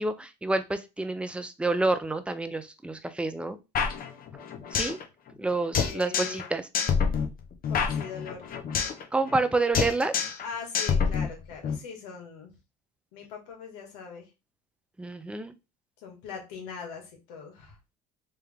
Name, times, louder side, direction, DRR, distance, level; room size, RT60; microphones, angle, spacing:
voice 1, 0.0-3.6 4.7-5.0 5.4-6.7 9.1-10.2 15.0-15.5, right 2 dB, 5° right, 9 dB, 0.6 m, -28 dB
sound 1, 3.7-5.0 5.3-5.4 5.7-6.5 6.7-9.0 9.3-9.5 9.7-10.5 10.7-11.7, left 6 dB, 45° left, 1.0 m, -27 dB
voice 2, 5.7-6.4 7.7-8.5 10.4-12.5 13.1-14.2 16.0-17.7, left 6 dB, 75° left, 1 dB, 1.8 m, -41 dB
3.3 x 3.3 x 3.5 m, 0.27 s
supercardioid pair, 85°, 21 cm